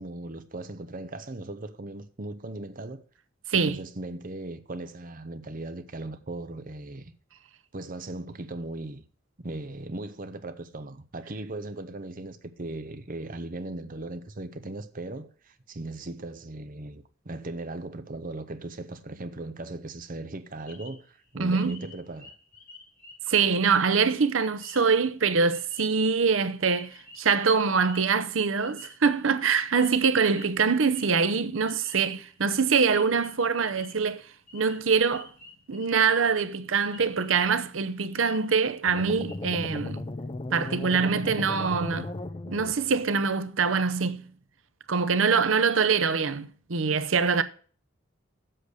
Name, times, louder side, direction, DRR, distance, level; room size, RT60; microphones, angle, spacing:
voice 1, 0.0-3.0 3.5-7.1 7.7-9.0 9.4-22.3, right 2 dB, 45° right, 0.9 m, -38 dB
voice 2, 3.5-3.8 21.4-21.8 23.3-34.2 34.5-35.3 35.7-40.0 40.5-42.1 42.5-44.2 44.9-47.4, right 5 dB, 80° right, 0.8 m, -24 dB
sound 1, 20.7-32.4 32.7-34.1 34.5-36.5 36.8-37.6 38.1-38.7 39.0-39.3, left 2 dB, 45° left, 5.4 m, -50 dB
sound 2, 38.9-43.1, left 2 dB, 25° left, 0.6 m, -36 dB
7.8 x 6.5 x 6.4 m
head